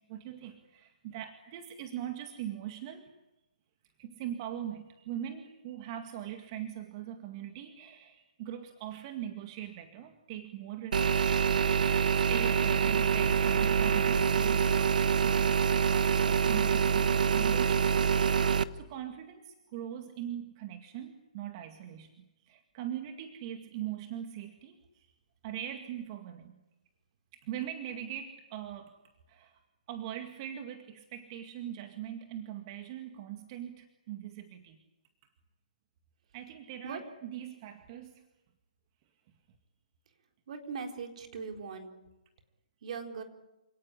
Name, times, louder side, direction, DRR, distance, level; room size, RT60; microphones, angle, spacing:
voice 1, 0.1-3.2 4.0-11.3 11.8-24.7 25.4-26.6 27.3-28.9 29.3-29.5 29.9-34.8 36.3-38.1, right 11 dB, 35° right, 6 dB, 2.1 m, -41 dB
sound 1, 10.9-18.6, right 7 dB, 75° right, 1.3 m, -26 dB
voice 2, 40.5-41.9 42.8-43.2, right 5 dB, 55° right, 4 dB, 4.0 m, -39 dB
28.0 x 18.5 x 10.0 m, 1.0 s
hypercardioid pair, 150°, 4 cm